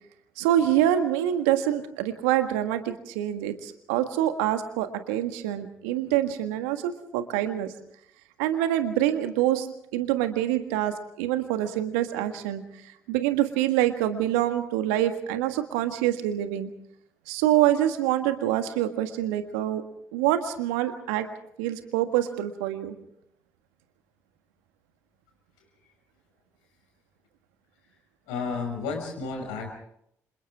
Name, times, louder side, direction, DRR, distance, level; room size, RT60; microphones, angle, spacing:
voice 1, 0.4-7.7 8.4-9.7 9.9-12.6 13.1-16.7 17.3-19.8 20.1-21.3 21.6-22.9, right 12 dB, 75° right, 8 dB, 1.6 m, -25 dB
voice 2, 28.3-29.7, left 4 dB, 75° left, 3 dB, 5.7 m, -32 dB
30.0 x 27.5 x 3.6 m, 0.72 s
figure-of-eight pair, 40°, 8 cm